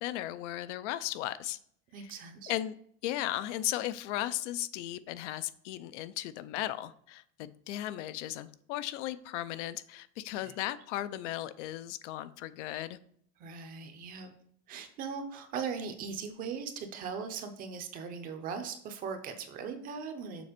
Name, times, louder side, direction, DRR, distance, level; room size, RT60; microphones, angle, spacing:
voice 1, 0.0-1.6 2.0-2.1 2.5-2.7 3.0-13.0, left 14 dB, 80° left, 14 dB, 0.6 m, -36 dB
voice 2, 1.9-2.5 10.3-10.5 13.4-14.3 14.7-20.5, right 6 dB, 25° right, 7 dB, 0.5 m, -39 dB
6.9 x 4.2 x 5.1 m, 0.63 s
cardioid pair, 180°, 35 cm